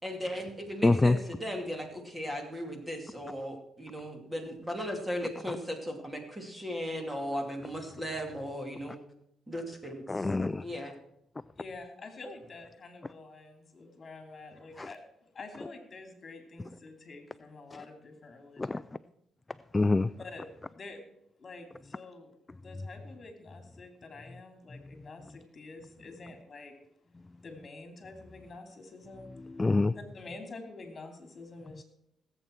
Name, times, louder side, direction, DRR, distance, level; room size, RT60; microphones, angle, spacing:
voice 1, 0.0-9.0 9.5-10.2 10.6-10.9, equal, 10° right, 3 dB, 2.6 m, -37 dB
voice 2, 0.8-1.2 5.5-5.6 10.1-10.6 14.8-14.9 17.7-17.8 18.6-18.8 19.7-20.1 24.7-24.8 29.4-29.9, left 2 dB, 20° left, 14 dB, 0.3 m, -26 dB
voice 3, 11.6-18.7 20.2-21.0 21.4-22.3 22.6-26.7 27.4-29.3 29.9-31.8, left 3 dB, 40° left, 4 dB, 2.9 m, -47 dB
17.5 x 8.1 x 4.5 m, 0.79 s
cardioid pair, 90°, 0 cm